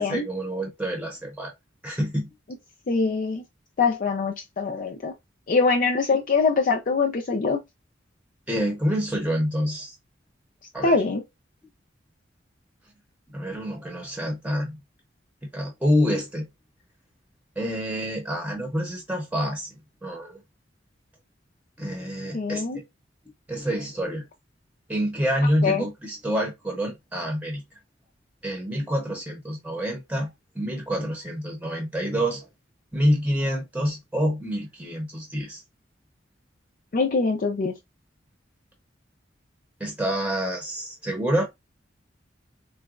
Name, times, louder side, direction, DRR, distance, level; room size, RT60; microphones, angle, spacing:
voice 1, 0.0-1.5 1.8-2.3 8.5-9.9 10.7-10.9 13.3-14.8 15.5-16.5 17.6-19.7 20.0-20.4 21.8-22.7 23.5-24.2 24.9-27.6 28.4-32.5 32.9-35.6 39.8-41.4, equal, 10° right, 0.8 m, -27 dB
voice 2, 2.9-3.4 3.8-5.1 5.5-7.6 10.8-11.2 22.3-22.8 25.6-25.8 36.9-37.7, left 4 dB, 50° left, 0.4 m, -23 dB
3.9 x 2.2 x 2.4 m
head